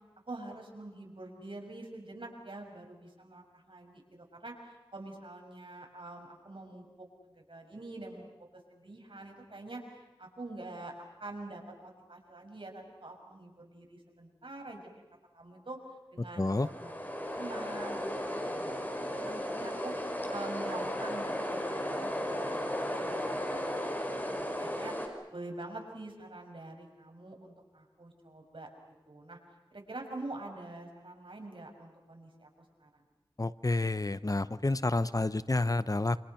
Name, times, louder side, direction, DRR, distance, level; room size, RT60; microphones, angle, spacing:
voice 1, 0.3-8.3 8.7-14.9 15.3-15.8 16.1-19.9 20.3-23.2 23.6-24.0 24.4-28.7 29.1-29.4 29.7-33.0, right 2 dB, 75° right, 2 dB, 6.1 m, -46 dB
voice 2, 16.4-16.7 33.4-36.2, left 2 dB, 45° left, 15 dB, 0.8 m, -29 dB
sound 1, 16.4-25.1, equal, 20° left, 5.3 m, -35 dB
28.5 x 27.5 x 5.8 m, 1.2 s
wide cardioid pair, 50°, 9 cm